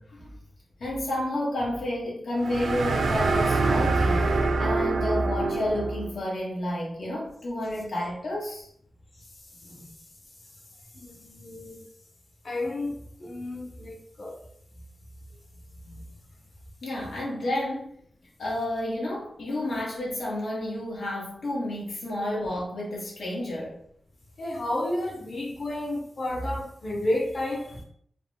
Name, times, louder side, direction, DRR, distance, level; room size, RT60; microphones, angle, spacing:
voice 1, 0.8-4.3 4.6-8.7 9.6-9.9 16.8-17.9 18.4-23.8, left 1 dB, 80° left, -4 dB, 1.6 m, -30 dB
sound 1, 2.4-6.2, right 3 dB, 90° right, 0.6 m, -25 dB
voice 2, 10.9-11.9 12.4-14.4 15.8-16.1 24.4-27.8, left 1 dB, 55° left, 0 dB, 1.1 m, -31 dB
4.7 x 2.3 x 3.5 m, 0.66 s
wide cardioid pair, 130°, 0 cm